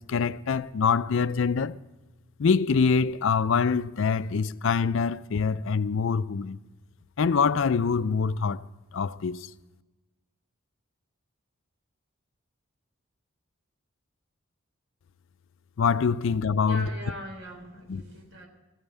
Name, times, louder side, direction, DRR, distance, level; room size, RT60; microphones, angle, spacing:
voice 1, 0.0-1.8 2.4-6.6 7.2-8.6 8.9-9.5 15.8-16.9 17.9-18.0, left 5 dB, 65° left, 0.4 m, -25 dB
voice 2, 16.6-18.5, equal, 70° right, 3.6 m, -40 dB
15.5 x 8.9 x 8.0 m
head